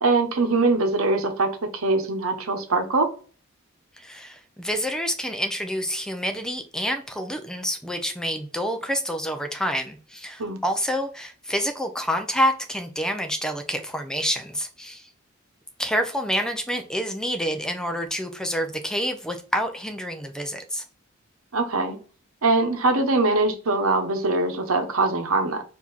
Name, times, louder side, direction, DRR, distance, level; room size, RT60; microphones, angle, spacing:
voice 1, 0.0-3.1 10.4-10.6 21.5-22.0 22.4-25.6, right 3 dB, 80° right, 1.0 m, -22 dB
voice 2, 4.0-15.1 15.8-20.8, equal, 5° left, 0.5 m, -28 dB
4.7 x 2.8 x 4.0 m
head